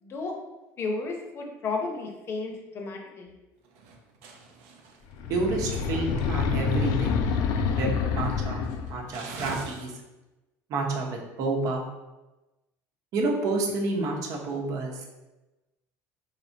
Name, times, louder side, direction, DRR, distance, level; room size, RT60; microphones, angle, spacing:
voice 1, 0.0-0.3 0.8-3.3, left 3 dB, 40° left, 2 dB, 0.8 m, -33 dB
sound 1, 3.6-6.3 6.7-7.3 7.8-7.9 8.2-10.0, right 3 dB, 90° right, 0.7 m, -43 dB
sound 2, 5.1-9.1, left 5 dB, 65° left, 0.4 m, -27 dB
voice 2, 5.3-7.2 7.8-9.9 10.7-11.8 13.1-15.1, right 3 dB, 60° right, 1 dB, 0.9 m, -29 dB
4.5 x 3.4 x 2.7 m, 1.0 s
cardioid pair, 125°, 7 cm